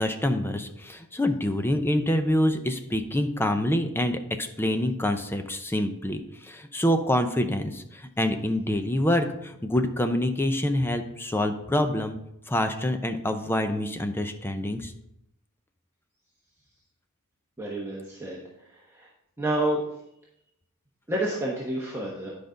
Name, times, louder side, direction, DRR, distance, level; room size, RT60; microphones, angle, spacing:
voice 1, 0.0-12.2 12.5-14.9, left 1 dB, 10° left, 7 dB, 0.6 m, -26 dB
voice 2, 17.6-19.1 19.4-19.8 21.1-22.4, right 1 dB, 10° right, -5 dB, 1.1 m, -29 dB
10.0 x 5.1 x 3.9 m, 0.80 s
head